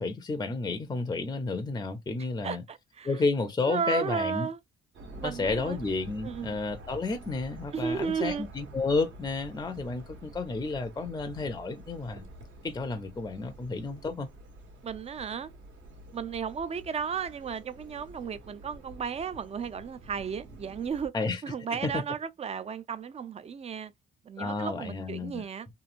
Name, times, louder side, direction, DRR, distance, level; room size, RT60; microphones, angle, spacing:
voice 1, 0.0-2.6 3.0-4.5 5.1-12.3 12.6-14.3 21.1-21.4 21.7-22.0 24.4-25.4, left 3 dB, 20° left, 0.5 m, -31 dB
voice 2, 2.4-3.1 3.7-4.6 5.2-5.8 6.2-6.6 7.7-8.5 14.8-15.5 16.1-21.1 21.4-23.9 24.3-25.7, right 6 dB, 30° right, 0.4 m, -34 dB
sound 1, 4.9-21.1, right 1 dB, 75° right, 1.4 m, -48 dB
3.0 x 2.6 x 2.5 m
cardioid pair, 90°, 20 cm